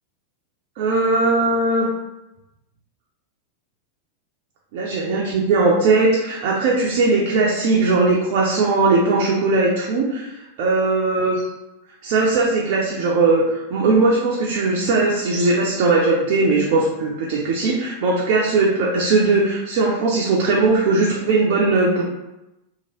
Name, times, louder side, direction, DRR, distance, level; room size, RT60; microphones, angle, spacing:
voice 1, 0.8-1.9 4.7-10.3 10.6-11.5 12.0-22.0, right 3 dB, 50° right, -3 dB, 0.5 m, -19 dB
2.9 x 2.5 x 2.9 m, 0.96 s
figure-of-eight pair, 90°, 0 cm